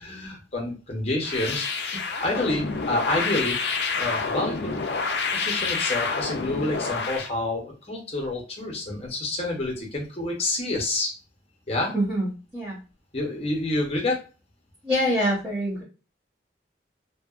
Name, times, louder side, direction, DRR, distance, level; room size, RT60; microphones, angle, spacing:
voice 1, 0.0-1.8 2.2-3.6 4.0-4.7 5.3-11.1 11.7-11.9 13.1-14.2, left 2 dB, 30° left, 0 dB, 0.7 m, -28 dB
sound 1, 1.2-7.3, left 4 dB, 60° left, 0.4 m, -28 dB
voice 2, 11.9-12.8 14.8-15.8, equal, 15° right, -7 dB, 0.9 m, -25 dB
2.7 x 2.3 x 2.3 m, 0.34 s
head